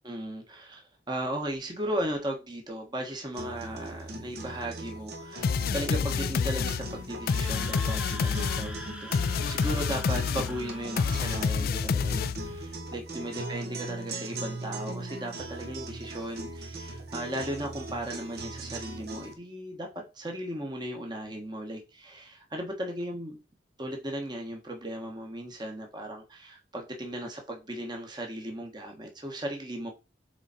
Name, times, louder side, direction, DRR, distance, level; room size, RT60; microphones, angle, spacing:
voice 1, 0.0-23.4 23.8-29.9, right 1 dB, 25° right, 1.4 m, -36 dB
sound 1, 3.3-19.3, right 2 dB, 60° right, 1.5 m, -40 dB
sound 2, 5.4-12.6, left 5 dB, 55° left, 0.3 m, -28 dB
Screaming, 7.2-11.6, right 1 dB, 5° right, 1.0 m, -43 dB
8.2 x 3.9 x 4.3 m
head